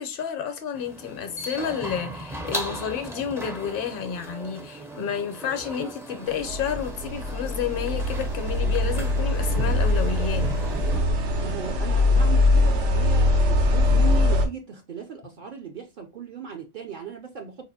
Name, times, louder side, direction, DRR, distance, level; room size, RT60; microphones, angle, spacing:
voice 1, 0.0-10.5, left 8 dB, 55° left, 0.8 m, -30 dB
sound 1, 0.7-11.0, right 1 dB, 5° right, 0.4 m, -37 dB
sound 2, 6.4-14.5, left 2 dB, 85° right, 1.1 m, -22 dB
voice 2, 11.4-17.7, right 6 dB, 55° right, 0.6 m, -37 dB
4.1 x 2.5 x 2.6 m
omnidirectional pair, 1.2 m